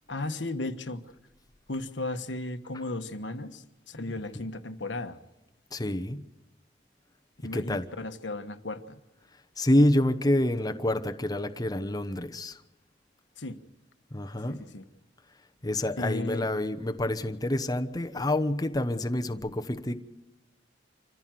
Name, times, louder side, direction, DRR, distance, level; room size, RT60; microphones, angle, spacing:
voice 1, 0.1-1.0 1.7-5.2 7.4-9.0 13.4-13.6 14.5-14.9 16.0-16.5, left 2 dB, 90° left, 7 dB, 1.4 m, -35 dB
voice 2, 5.7-6.2 7.5-7.9 9.6-12.6 14.1-14.6 15.6-20.0, left 1 dB, 20° left, 6 dB, 1.0 m, -27 dB
26.5 x 15.0 x 7.7 m, 1.0 s
head